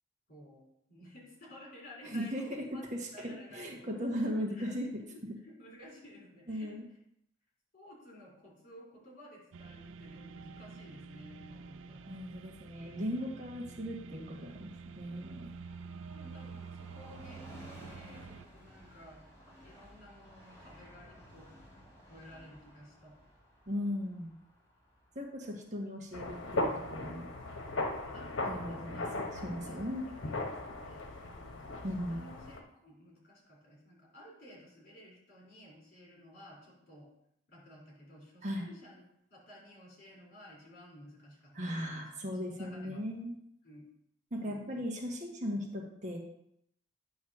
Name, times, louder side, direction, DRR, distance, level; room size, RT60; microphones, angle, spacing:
voice 1, 0.3-2.8 3.1-6.7 7.7-12.1 15.8-19.2 19.6-21.5 22.1-23.2 28.1-29.2 29.6-29.9 30.4-37.1 37.5-39.0 39.3-43.0 43.6-43.9 44.3-44.8, left 1 dB, 50° left, -3 dB, 3.1 m, -54 dB
voice 2, 2.0-2.4 3.2-4.9 6.5-6.8 12.1-15.5 23.7-24.3 25.1-27.3 28.5-30.1 31.8-32.2 38.4-38.6 41.5-43.4 44.3-46.2, equal, 40° right, 0 dB, 1.3 m, -37 dB
sound 1, 9.5-18.5, right 5 dB, 80° right, 0.4 m, -48 dB
Train, 14.2-27.5 27.9-28.0, equal, 15° left, 2.5 m, -57 dB
sound 2, 26.1-32.6, left 2 dB, 90° left, 0.9 m, -38 dB
9.2 x 3.1 x 6.0 m, 0.76 s
head